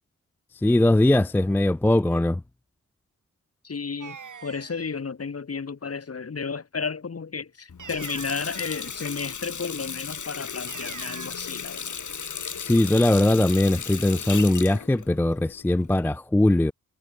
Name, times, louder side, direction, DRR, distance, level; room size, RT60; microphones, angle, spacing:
voice 1, 0.5-2.4 12.6-16.7, left 1 dB, 5° left, 0.4 m, -20 dB
voice 2, 3.6-4.2 4.4-11.8, left 5 dB, 45° left, 1.9 m, -32 dB
sound 1, 4.0-4.9 7.8-9.1 10.7-11.3, right 6 dB, 65° right, 2.8 m, -42 dB
Water tap faucet, 7.7-16.1, left 6 dB, 60° left, 2.8 m, -36 dB
cardioid pair, 50°, 33 cm